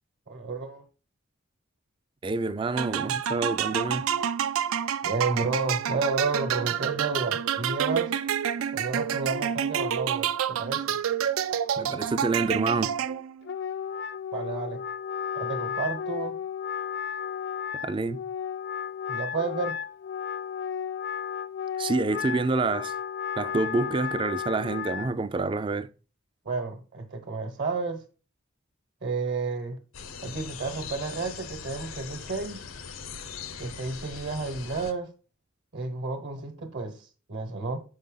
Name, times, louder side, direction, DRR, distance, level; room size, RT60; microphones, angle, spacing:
voice 1, 0.3-0.8 5.0-8.1 8.7-11.0 14.3-14.8 15.3-16.4 19.1-19.8 26.4-28.0 29.0-29.8 30.2-32.7 33.6-35.1 35.7-37.8, right 4 dB, 55° right, 1.0 m, -31 dB
voice 2, 2.2-4.0 11.8-12.9 17.7-18.2 21.8-22.9 23.4-25.9, right 3 dB, 25° right, 0.3 m, -27 dB
sound 1, 2.8-13.4, right 9 dB, 85° right, 0.4 m, -28 dB
Wind instrument woodwind instrument, 13.4-25.1, left 8 dB, 55° left, 0.4 m, -33 dB
sound 2, 29.9-34.9, left 6 dB, 80° left, 0.7 m, -41 dB
6.5 x 5.3 x 3.8 m
head